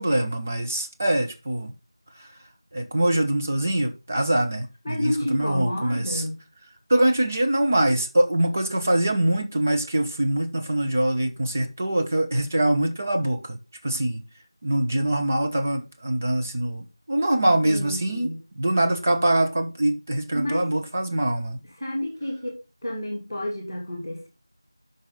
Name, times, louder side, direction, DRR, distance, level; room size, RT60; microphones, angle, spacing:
voice 1, 0.0-1.7 2.7-6.2 6.9-13.6 13.8-14.2 14.6-18.3 18.6-21.6, right 1 dB, 25° right, 1.0 m, -23 dB
voice 2, 4.8-6.4 17.5-18.4 20.3-20.7 21.8-24.3, left 1 dB, 5° right, 2.2 m, -30 dB
10.5 x 5.7 x 3.8 m
figure-of-eight pair, 175°, 2 cm